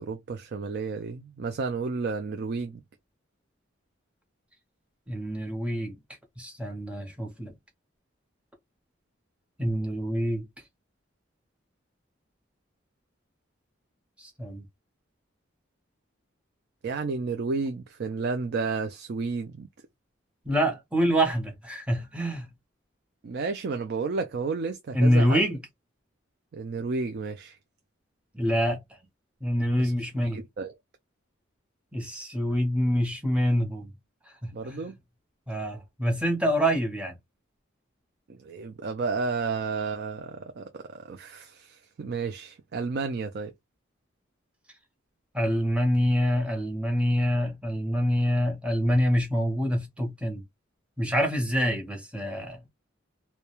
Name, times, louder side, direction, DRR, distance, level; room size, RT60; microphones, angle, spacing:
voice 1, 0.0-2.8 16.8-19.7 23.2-25.4 26.5-27.6 29.8-29.9 30.3-30.7 34.5-34.9 38.4-43.5, right 4 dB, 55° right, 0.3 m, -32 dB
voice 2, 5.1-6.0 6.4-7.5 9.6-10.4 14.2-14.6 20.5-22.5 24.9-25.6 28.3-28.8 29.4-30.4 31.9-33.9 34.4-34.8 35.5-37.1 45.3-50.4 51.0-52.6, equal, 5° right, 0.7 m, -26 dB
2.3 x 2.2 x 2.9 m
head